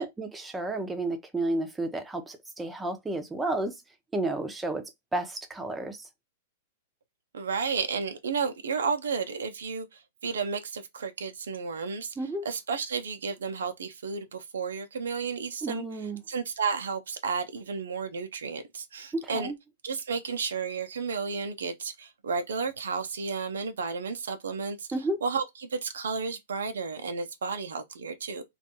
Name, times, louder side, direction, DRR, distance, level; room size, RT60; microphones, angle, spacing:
voice 1, 0.0-3.8 4.1-6.1 12.2-12.5 15.6-16.2 19.1-19.6 24.9-25.2, right 2 dB, 10° right, 0.6 m, -32 dB
voice 2, 7.3-12.1 12.4-15.8 16.3-19.5 19.8-24.9 25.2-25.4 25.7-28.4, right 5 dB, 75° right, 0.4 m, -32 dB
2.5 x 2.3 x 2.7 m
hypercardioid pair, 105°, 0 cm